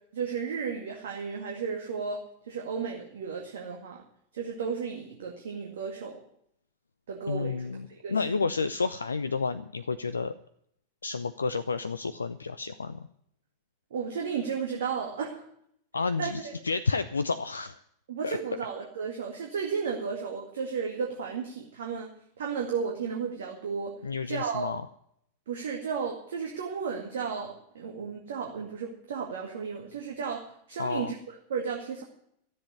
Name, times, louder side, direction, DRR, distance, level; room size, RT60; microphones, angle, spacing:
voice 1, 0.1-4.0 4.3-6.2 7.1-8.1 13.9-15.4 16.2-16.5 18.1-22.1 22.4-24.0 24.3-24.8 25.5-32.0, right 6 dB, 60° right, 0 dB, 2.2 m, -34 dB
voice 2, 7.3-10.3 11.0-13.1 15.9-17.8 18.2-18.4 24.0-24.8 30.8-31.1, left 4 dB, 75° left, 13 dB, 0.5 m, -30 dB
13.5 x 7.7 x 9.6 m, 0.70 s
figure-of-eight pair, 90°, 0 cm